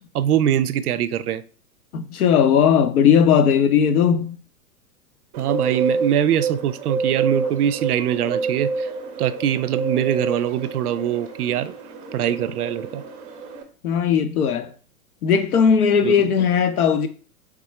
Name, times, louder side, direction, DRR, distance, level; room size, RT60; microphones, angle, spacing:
voice 1, 0.1-1.4 5.4-8.9 9.2-11.7 12.1-13.0 16.0-16.1, right 10 dB, 70° right, 0.5 m, -22 dB
voice 2, 1.9-4.3 13.8-14.7 15.2-17.1, left 7 dB, 70° left, 0.7 m, -17 dB
Bird, 5.3-13.6, right 5 dB, 20° right, 0.6 m, -28 dB
3.7 x 3.6 x 3.1 m
hypercardioid pair, 110°, 46 cm